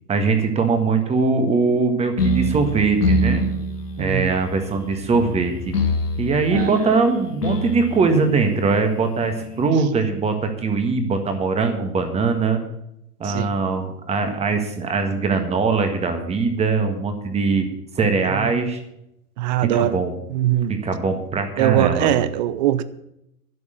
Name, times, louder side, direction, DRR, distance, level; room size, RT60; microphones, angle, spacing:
voice 1, 0.1-3.5 4.0-5.7 6.2-12.6 13.2-17.7 18.0-18.8 19.6-20.1 20.7-22.2, right 4 dB, 15° right, 1.6 m, -21 dB
sound 1, 2.2-9.7, left 1 dB, 80° left, 2.4 m, -26 dB
voice 2, 4.0-4.3 6.5-6.9 13.2-13.5 18.3-18.5 19.4-20.0 20.3-20.8 21.6-22.8, right 12 dB, 30° right, 0.6 m, -21 dB
11.0 x 7.0 x 9.0 m
figure-of-eight pair, 115°, 46 cm